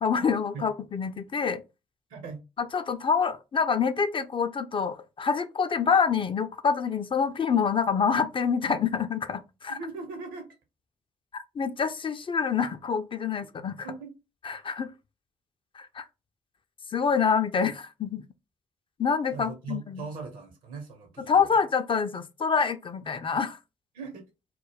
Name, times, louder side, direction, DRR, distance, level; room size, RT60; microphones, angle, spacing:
voice 1, 0.0-1.6 2.6-9.8 11.3-13.9 14.4-14.9 15.8-16.0 16.9-18.2 19.0-20.1 21.3-23.6, left 6 dB, 35° left, 0.4 m, -26 dB
voice 2, 2.1-2.4 9.7-10.5 13.8-14.2 19.3-21.5 23.0-23.1 23.9-24.3, right 4 dB, 65° right, 1.0 m, -39 dB
2.3 x 2.2 x 3.4 m
hypercardioid pair, 40°, 15 cm